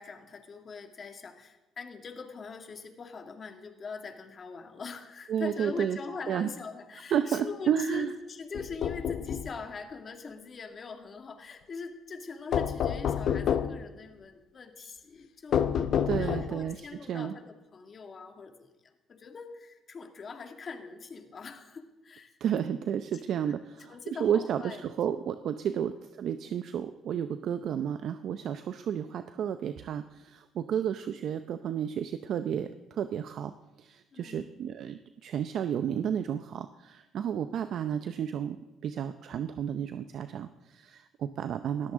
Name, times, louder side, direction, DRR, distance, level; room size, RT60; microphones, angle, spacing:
voice 1, 0.0-15.7 16.2-18.7 19.1-22.4 23.1-23.2 23.9-24.8 25.8-25.9 34.1-34.5, left 4 dB, 45° left, 5 dB, 2.1 m, -42 dB
voice 2, 5.3-6.0 6.3-6.5 7.1-8.1 16.1-17.3 22.4-33.5 33.8-41.9, right 9 dB, 65° right, 10 dB, 0.6 m, -32 dB
sound 1, 8.5-9.5 12.5-13.8 15.5-16.7, left 8 dB, 65° left, 0.9 m, -28 dB
19.0 x 14.0 x 3.7 m, 1.1 s
cardioid pair, 85°, 0 cm